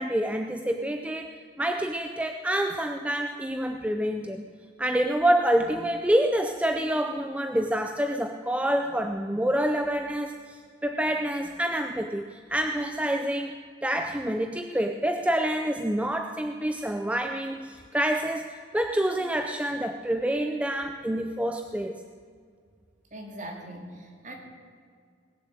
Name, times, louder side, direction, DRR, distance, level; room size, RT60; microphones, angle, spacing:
voice 1, 0.0-4.5 4.8-13.5 13.8-18.5 18.7-22.0, right 1 dB, 5° right, 5 dB, 0.4 m, -27 dB
voice 2, 23.1-24.3, right 1 dB, 40° right, 1 dB, 2.4 m, -41 dB
19.5 x 7.3 x 8.0 m, 2.1 s
head